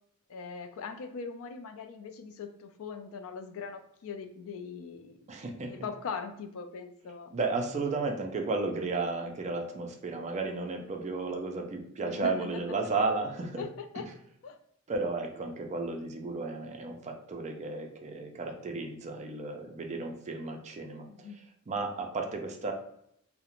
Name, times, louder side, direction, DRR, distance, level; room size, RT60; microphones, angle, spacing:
voice 1, 0.3-5.3 5.6-7.3 12.0-12.6 13.6-14.0 14.4-14.6 21.1-21.4, left 5 dB, 65° left, 7 dB, 0.3 m, -41 dB
voice 2, 5.3-5.8 7.3-13.6 14.9-22.7, right 3 dB, 30° right, 3 dB, 0.4 m, -33 dB
2.4 x 2.1 x 2.9 m, 0.72 s
head